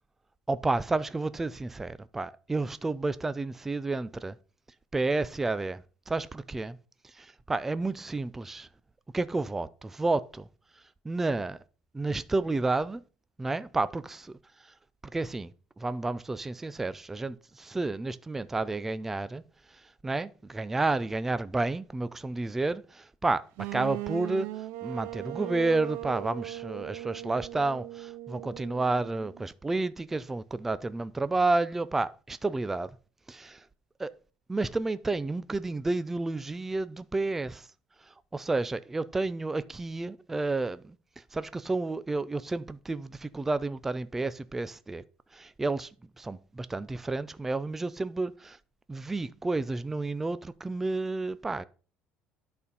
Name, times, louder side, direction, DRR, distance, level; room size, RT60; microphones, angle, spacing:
voice 1, 0.5-4.4 4.9-6.8 7.1-8.7 9.1-10.5 11.0-11.6 11.9-13.0 13.4-14.4 15.1-15.5 15.8-19.4 20.0-23.4 23.7-24.5 24.8-32.9 33.3-33.6 34.0-34.1 34.5-37.7 38.3-41.0 41.3-45.0 45.3-45.9 46.2-48.6 48.9-51.7, right 3 dB, 10° right, 0.3 m, -31 dB
sound 1, 23.6-29.4, right 17 dB, 80° right, 0.6 m, -39 dB
11.0 x 4.2 x 5.3 m
cardioid pair, 170°, 4 cm